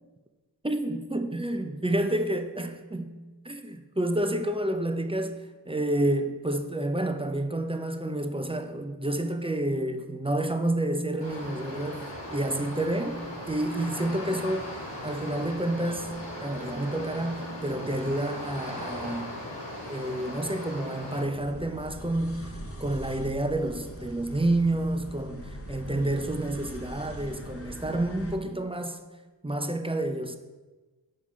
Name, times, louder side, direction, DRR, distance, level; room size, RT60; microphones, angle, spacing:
voice 1, 0.6-3.1 3.5-5.4 5.7-12.0 12.3-14.7 15.0-16.1 16.4-19.4 19.8-29.0 29.4-30.4, right 1 dB, 15° right, 0.5 m, -29 dB
sound 1, 11.2-21.2, left 1 dB, 80° left, 2.4 m, -38 dB
sound 2, 21.2-28.4, equal, 30° left, 0.8 m, -41 dB
6.4 x 4.7 x 5.5 m
wide cardioid pair, 50°, 43 cm